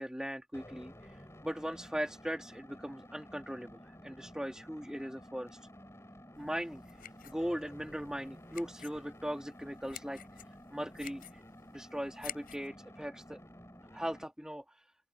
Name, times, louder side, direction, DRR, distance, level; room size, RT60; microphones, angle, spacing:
voice 1, 0.0-5.6 6.4-7.0 7.2-10.2 10.7-11.4 11.7-13.4 13.9-14.8, equal, 5° right, 1.9 m, -39 dB
sound 1, 0.5-14.2, equal, 15° left, 6.1 m, -53 dB
sound 2, 6.3-12.7, left 10 dB, 50° left, 7.9 m, -51 dB
open air
head